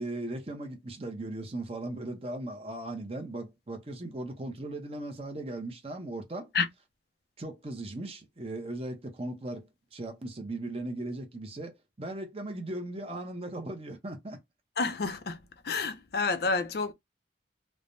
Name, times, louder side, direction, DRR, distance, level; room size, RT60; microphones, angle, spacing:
voice 1, 0.0-6.5 7.4-14.4, right 1 dB, 30° right, 0.7 m, -38 dB
voice 2, 14.8-15.4 15.7-16.9, left 4 dB, 55° left, 0.5 m, -29 dB
3.2 x 2.1 x 2.5 m
head